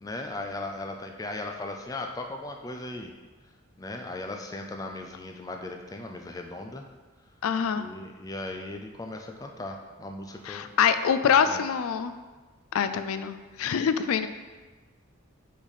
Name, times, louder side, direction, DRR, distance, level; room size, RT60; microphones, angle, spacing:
voice 1, 0.0-3.1 3.8-6.8 7.8-10.7 11.5-11.6, left 2 dB, 15° left, 3 dB, 0.4 m, -37 dB
voice 2, 7.4-7.9 10.5-12.1 12.7-14.3, left 7 dB, 85° left, 10 dB, 0.4 m, -25 dB
5.8 x 4.1 x 4.1 m, 1.3 s
head